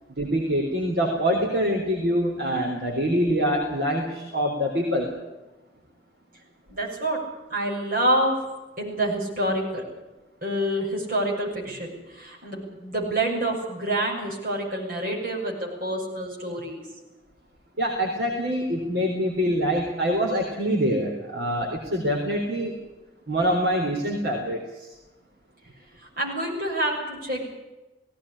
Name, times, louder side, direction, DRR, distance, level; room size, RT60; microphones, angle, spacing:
voice 1, 0.2-5.1 17.8-22.7 23.3-24.9, equal, 65° right, 0 dB, 3.8 m, -25 dB
voice 2, 6.7-7.2 7.5-8.3 8.8-9.8 10.4-16.8 26.0-27.4, right 1 dB, 50° right, -2 dB, 7.2 m, -27 dB
18.0 x 17.5 x 10.0 m, 1.1 s
head